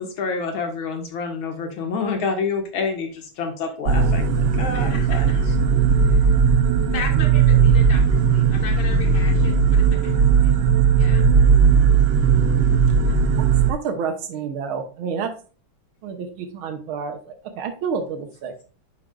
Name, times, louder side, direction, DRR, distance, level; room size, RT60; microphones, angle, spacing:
voice 1, 0.0-4.3 4.6-5.3, left 4 dB, 80° left, 4 dB, 2.1 m, -27 dB
sound 1, 3.9-13.7, right 6 dB, 65° right, 1.2 m, -17 dB
voice 2, 4.7-5.5 6.0-6.3 6.9-8.0 8.3-10.1 11.0-11.2 13.0-13.1, left 5 dB, 65° left, 0 dB, 2.3 m, -35 dB
voice 3, 13.7-15.3 16.0-18.6, right 6 dB, 85° right, 5 dB, 1.8 m, -29 dB
11.0 x 5.1 x 2.3 m, 0.37 s
omnidirectional pair, 2.2 m